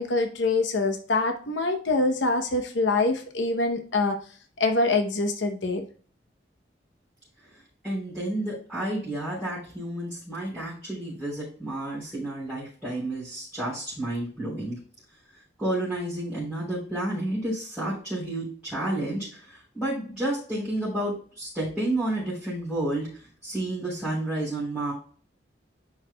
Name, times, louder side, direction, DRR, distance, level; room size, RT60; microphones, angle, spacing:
voice 1, 0.0-4.2 4.6-5.9, left 3 dB, 85° left, 5 dB, 0.8 m, -25 dB
voice 2, 7.4-14.8 15.6-24.9, right 1 dB, 5° right, -11 dB, 3.6 m, -31 dB
10.5 x 4.8 x 2.2 m, 0.42 s
head